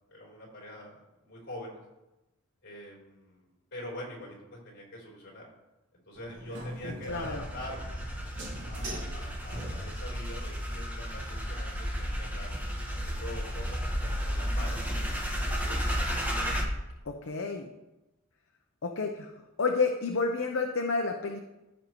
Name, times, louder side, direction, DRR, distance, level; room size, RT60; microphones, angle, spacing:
voice 1, 0.1-1.8 2.6-5.4 5.9-8.0 8.7-12.5 12.9-15.9, left 1 dB, 55° left, -4 dB, 3.4 m, -44 dB
sound 1, 6.1-10.2, equal, 60° right, 1.7 m, -42 dB
voice 2, 7.1-7.4 17.1-17.7 18.8-19.3 19.6-21.4, left 4 dB, 75° left, 2 dB, 0.7 m, -30 dB
sound 2, 7.1-16.6, equal, 10° right, 1.2 m, -33 dB
15.5 x 5.4 x 3.0 m, 0.99 s
head